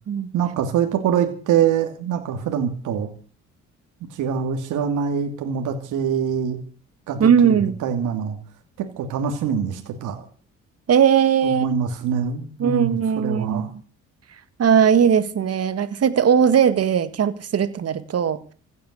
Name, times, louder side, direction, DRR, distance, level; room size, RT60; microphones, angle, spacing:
voice 1, 0.3-3.1 4.1-6.6 7.1-8.4 8.8-10.2 11.4-13.7, right 7 dB, 85° right, 5 dB, 2.8 m, -24 dB
voice 2, 7.2-7.8 10.9-11.7 12.6-13.7 14.6-18.5, right 8 dB, 55° right, 13 dB, 1.9 m, -18 dB
16.0 x 9.5 x 8.2 m, 0.41 s
cardioid pair, 90°, 30 cm